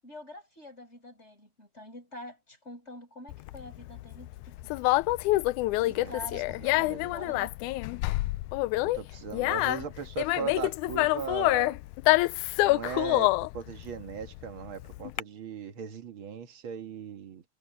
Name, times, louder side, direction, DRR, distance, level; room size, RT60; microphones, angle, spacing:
voice 1, 0.0-5.1 5.7-8.0, left 1 dB, 20° left, 7.4 m, -46 dB
Conversation, 3.3-15.2, left 19 dB, 85° left, 2.0 m, -27 dB
voice 2, 6.6-7.3 8.9-11.8 12.6-17.4, right 7 dB, 50° right, 2.2 m, -38 dB
omnidirectional pair, 3.5 m